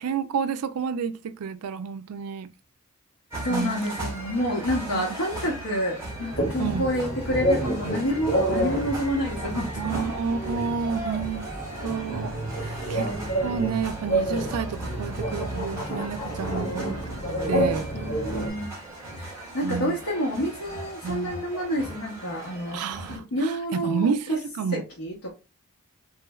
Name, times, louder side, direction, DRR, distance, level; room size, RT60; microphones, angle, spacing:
voice 1, 0.0-2.5 3.5-4.0 4.9-5.0 6.6-6.9 9.8-11.5 11.8-12.3 12.9-13.1 13.4-17.0 17.5-17.9 19.6-20.0 21.0-21.5 22.7-24.8, right 6 dB, 80° right, 0.4 m, -30 dB
sound 1, 3.3-23.2, right 1 dB, 15° right, 1.3 m, -38 dB
voice 2, 3.4-10.0 12.6-12.9 17.9-18.7 19.2-22.8 23.1-24.4 24.7-25.3, equal, 85° left, 0.8 m, -29 dB
sound 2, 6.3-18.5, right 1 dB, 45° left, 1.7 m, -29 dB
3.1 x 3.0 x 2.3 m
head